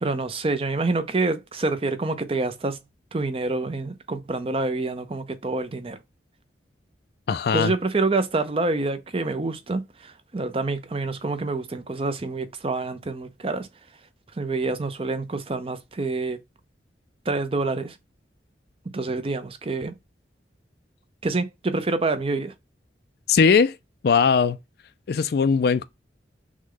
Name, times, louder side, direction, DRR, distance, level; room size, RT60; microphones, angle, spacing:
voice 1, 0.0-2.8 3.1-6.0 7.5-13.7 14.4-16.4 17.3-18.0 18.9-19.9 21.2-22.5, right 3 dB, 30° right, 0.6 m, -27 dB
voice 2, 7.3-7.7 23.3-23.8 24.0-24.6 25.1-25.8, left 5 dB, 60° left, 0.4 m, -19 dB
6.2 x 2.2 x 3.7 m
head